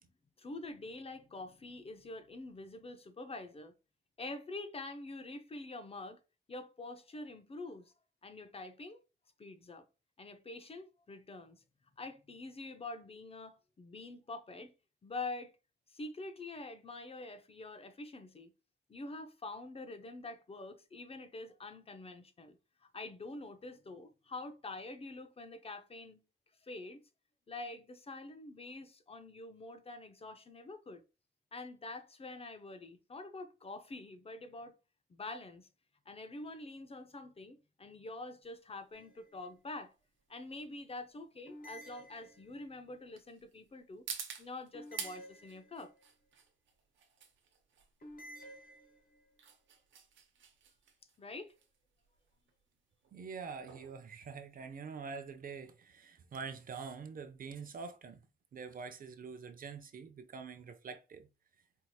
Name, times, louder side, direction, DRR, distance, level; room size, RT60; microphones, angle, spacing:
voice 1, 0.4-3.7 4.2-6.2 6.5-7.9 8.2-9.0 9.4-9.9 10.2-11.6 12.0-14.7 15.0-15.5 15.9-18.5 18.9-26.2 26.6-27.0 27.5-31.0 31.5-34.7 35.1-35.7 36.1-39.9 40.3-44.1 44.4-45.9 51.2-51.5, left 2 dB, 30° left, 0.6 m, -46 dB
sound 1, 38.4-55.1, right 7 dB, 85° right, 0.8 m, -51 dB
sound 2, 38.9-39.5 41.5-42.8 44.7-46.1 48.0-49.3, equal, 50° left, 1.4 m, -52 dB
voice 2, 53.1-58.2 58.5-61.3, right 5 dB, 50° right, 0.6 m, -45 dB
4.5 x 2.8 x 2.3 m
wide cardioid pair, 120°, 19 cm